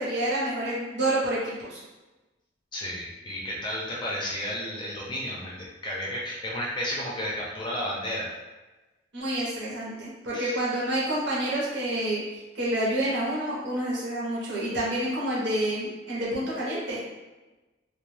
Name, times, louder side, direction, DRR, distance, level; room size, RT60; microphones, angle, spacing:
voice 1, 0.0-1.8 9.1-12.2 12.5-17.0, right 1 dB, 75° right, -7 dB, 0.8 m, -28 dB
voice 2, 2.7-8.3 10.3-10.6, equal, 25° left, -4 dB, 0.4 m, -32 dB
2.3 x 2.2 x 3.1 m, 1.2 s
head